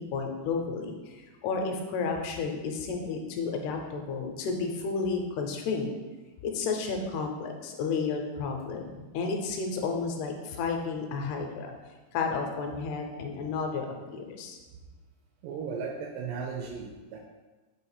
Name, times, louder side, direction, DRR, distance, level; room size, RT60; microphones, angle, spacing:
voice 1, 0.0-5.9 6.4-11.7 12.1-14.6, left 4 dB, 80° left, 3 dB, 2.6 m, -32 dB
voice 2, 15.4-17.2, right 5 dB, 85° right, 0 dB, 2.7 m, -36 dB
6.8 x 2.9 x 4.8 m, 1.2 s
omnidirectional pair, 4.8 m